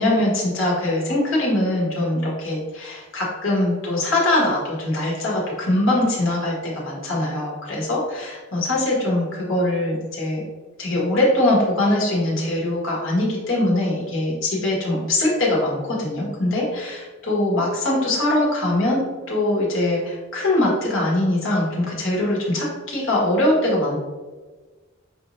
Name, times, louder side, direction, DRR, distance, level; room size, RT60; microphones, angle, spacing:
voice 1, 0.0-10.4 10.8-19.0 19.3-24.0, left 1 dB, 70° left, -5 dB, 1.5 m, -22 dB
6.1 x 3.2 x 2.7 m, 1.3 s
head